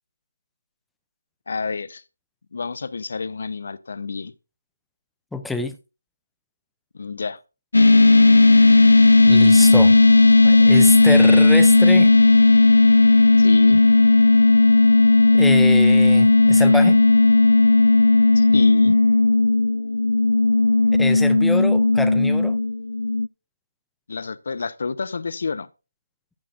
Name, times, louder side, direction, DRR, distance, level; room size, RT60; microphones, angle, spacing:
voice 1, 1.5-2.0 2.5-4.3 6.9-7.4 13.4-13.8 18.3-19.0 24.1-25.7, left 4 dB, 50° left, 0.7 m, -29 dB
voice 2, 5.3-5.8 9.3-10.0 10.4-12.1 15.3-17.0 21.0-22.6, left 3 dB, ahead, 0.4 m, -26 dB
sound 1, 7.7-23.3, left 2 dB, 80° left, 0.4 m, -14 dB
12.5 x 7.5 x 2.5 m
figure-of-eight pair, 170°, 0 cm